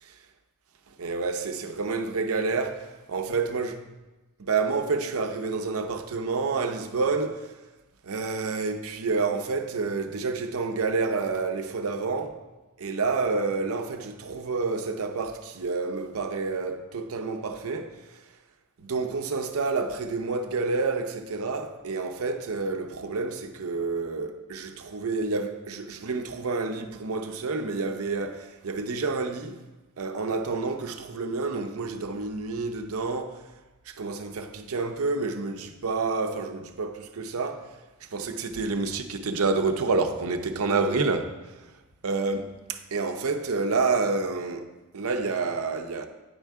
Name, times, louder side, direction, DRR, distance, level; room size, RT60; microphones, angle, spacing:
voice 1, 1.0-3.7 4.4-7.5 8.0-12.4 12.8-18.2 18.8-29.6 30.0-33.4 33.9-41.6 42.0-44.7 44.9-46.1, right 4 dB, 75° right, 0.6 m, -29 dB
9.4 x 4.5 x 3.6 m
head